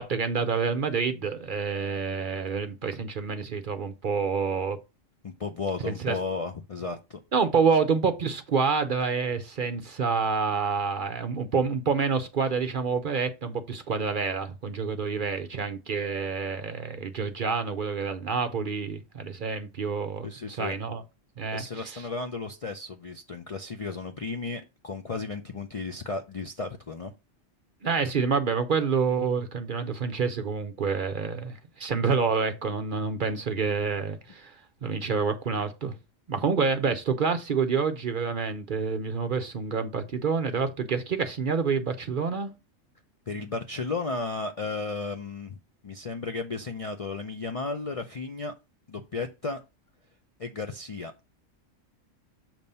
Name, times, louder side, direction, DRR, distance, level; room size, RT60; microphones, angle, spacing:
voice 1, 0.0-4.8 5.8-6.2 7.3-21.0 21.4-22.0 27.8-35.9 36.3-42.5, right 5 dB, 50° right, 0.7 m, -28 dB
voice 2, 5.2-7.2 20.2-20.8 21.5-27.1 43.3-45.6 45.8-48.5 48.9-49.6 50.4-51.1, left 3 dB, 50° left, 0.4 m, -34 dB
6.9 x 3.0 x 5.4 m
omnidirectional pair, 1.3 m